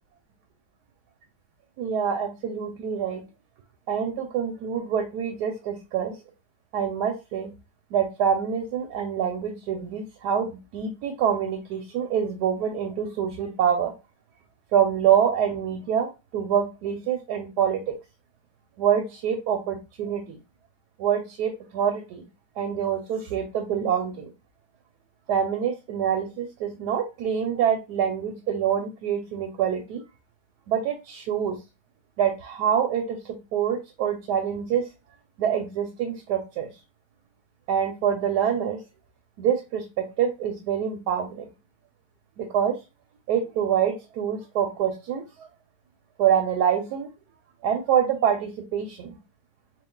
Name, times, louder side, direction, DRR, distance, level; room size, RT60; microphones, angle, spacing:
voice 1, 1.8-3.2 3.9-6.1 6.7-7.5 7.9-13.9 14.7-17.9 18.8-20.4 21.0-22.3 22.6-24.3 25.3-30.0 30.7-31.6 32.2-34.9 35.4-36.7 37.7-38.8 39.4-41.5 42.4-42.8 43.3-45.5 46.2-47.1 47.6-49.1, right 8 dB, 75° right, 5 dB, 1.1 m, -26 dB
3.8 x 2.4 x 3.6 m, 0.28 s
omnidirectional pair, 1.8 m